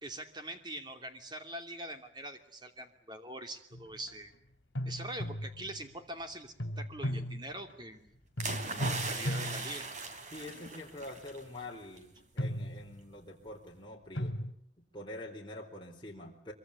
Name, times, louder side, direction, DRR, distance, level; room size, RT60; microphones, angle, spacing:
voice 1, 0.0-4.3 4.9-8.2 8.8-9.9, right 1 dB, 25° right, 7 dB, 2.7 m, -43 dB
sound 1, 3.7-4.1 4.7-5.9 6.6-8.0 8.4-10.7 11.2-11.5 12.2-13.3 14.1-14.5, equal, 80° left, 2.2 m, -37 dB
sound 2, 8.4-11.4 11.7-12.0, right 3 dB, 40° right, 3.7 m, -39 dB
voice 2, 10.3-14.4 14.9-16.5, left 1 dB, 25° left, -1 dB, 4.0 m, -45 dB
24.5 x 24.0 x 9.9 m, 0.67 s
head